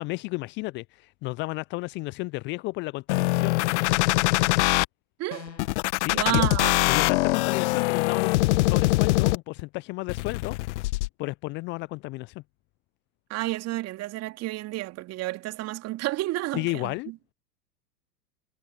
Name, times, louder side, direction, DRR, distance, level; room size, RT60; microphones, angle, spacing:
voice 1, 0.0-3.6 6.0-6.5 6.8-10.6 11.2-12.4 16.5-17.1, left 23 dB, 25° left, 0.7 m, -32 dB
sound 1, 3.1-4.8 5.6-9.6 10.1-11.1, left 21 dB, 45° left, 1.5 m, -23 dB
sound 2, 5.3-5.8, left 6 dB, 85° left, 2.8 m, -42 dB
voice 2, 6.1-6.8 13.3-17.2, right 18 dB, 30° right, 2.5 m, -30 dB
figure-of-eight pair, 105°, 50 cm